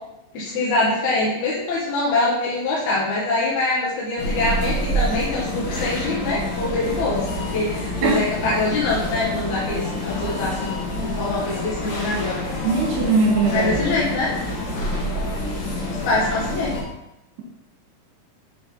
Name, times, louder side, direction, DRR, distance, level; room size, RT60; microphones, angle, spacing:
voice 1, 0.3-7.3 7.5-10.7 11.0-12.4 13.5-14.3 15.9-16.7, left 2 dB, 65° left, -6 dB, 2.2 m, -24 dB
sound 1, 4.2-16.8, left 1 dB, 90° left, 3.3 m, -27 dB
voice 2, 12.6-13.8, right 4 dB, 70° right, -3 dB, 2.4 m, -20 dB
7.0 x 3.2 x 4.2 m, 0.90 s
omnidirectional pair, 4.1 m